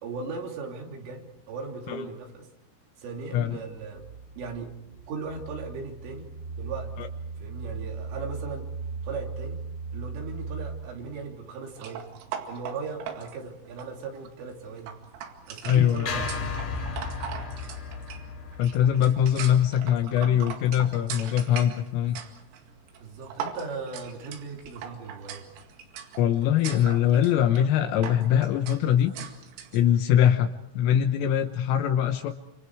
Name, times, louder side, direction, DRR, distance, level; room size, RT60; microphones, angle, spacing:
voice 1, 0.0-2.5 3.0-4.1 4.4-4.7 5.1-6.3 6.6-6.9 7.4-8.7 9.0-9.6 9.9-12.0 12.5-14.9 15.5-16.3 23.0-25.4, right 4 dB, 70° right, 1 dB, 5.5 m, -38 dB
sound 1, 3.9-11.4, right 4 dB, 55° right, 1.5 m, -38 dB
sound 2, 11.7-29.8, right 8 dB, 90° right, 4.9 m, -41 dB
voice 2, 15.6-16.2 18.6-22.2 26.2-29.1 29.7-32.3, left 10 dB, 80° left, 6 dB, 3.6 m, -22 dB
sound 3, 16.1-20.4, left 4 dB, 55° left, 5.1 m, -35 dB
29.0 x 27.5 x 4.8 m, 0.80 s
omnidirectional pair, 6.0 m